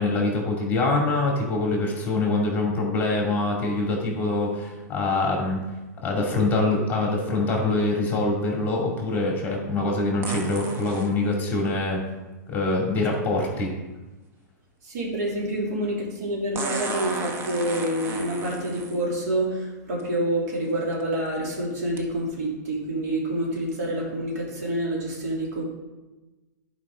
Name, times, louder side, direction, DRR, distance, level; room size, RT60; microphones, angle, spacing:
voice 1, 0.0-5.6 6.0-12.0 12.5-13.7, left 2 dB, 20° left, -1 dB, 2.3 m, -24 dB
cats suck havesomegases, 10.2-11.1 13.1-13.2 16.5-19.0 20.0-20.1 20.7-21.0 22.0-22.1, right 3 dB, 25° right, 0.9 m, -34 dB
voice 2, 14.8-25.6, right 1 dB, 65° right, -3 dB, 2.8 m, -27 dB
10.5 x 5.0 x 3.6 m, 1.1 s
hypercardioid pair, 130°, 10 cm